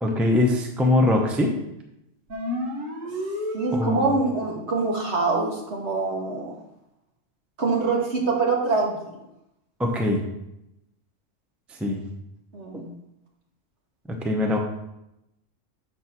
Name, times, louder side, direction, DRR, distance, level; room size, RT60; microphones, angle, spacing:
voice 1, 0.0-1.5 3.7-4.1 9.8-10.2 11.8-12.0 14.1-14.6, left 2 dB, ahead, 2 dB, 0.6 m, -22 dB
sound 1, 2.3-4.3, left 1 dB, 80° right, 1.6 m, -31 dB
voice 2, 3.5-6.5 7.6-8.9 12.5-12.8, right 3 dB, 60° right, -2 dB, 1.9 m, -24 dB
6.8 x 4.2 x 6.0 m, 0.86 s
omnidirectional pair, 1.3 m